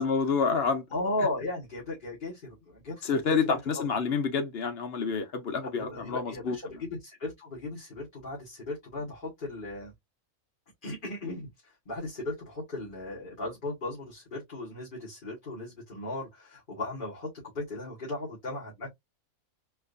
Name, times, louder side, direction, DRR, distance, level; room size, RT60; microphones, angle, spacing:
voice 1, 0.0-0.8 3.0-6.6, left 5 dB, 55° left, 0.9 m, -28 dB
voice 2, 0.9-3.4 3.7-3.8 5.7-9.9 10.8-17.3 17.5-18.9, left 2 dB, 35° left, 1.7 m, -36 dB
4.3 x 2.6 x 2.5 m
omnidirectional pair, 1.5 m